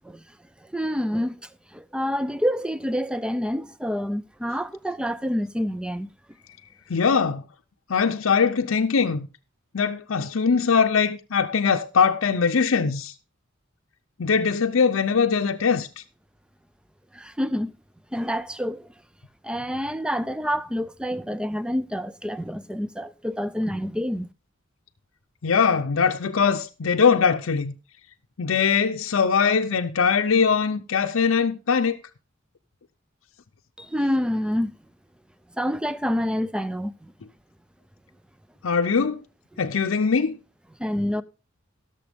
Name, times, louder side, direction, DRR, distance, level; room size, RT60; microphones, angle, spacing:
voice 1, 0.7-1.4 1.7-6.1 17.1-17.7 18.1-18.9 19.4-24.3 33.8-34.7 35.6-37.1 40.8-41.2, equal, 5° right, 0.4 m, -27 dB
voice 2, 6.9-7.4 7.9-9.3 9.7-13.1 14.2-15.9 25.4-27.7 28.4-32.0 38.6-39.2 39.6-40.4, left 5 dB, 75° left, 0.6 m, -21 dB
16.5 x 6.9 x 3.5 m
head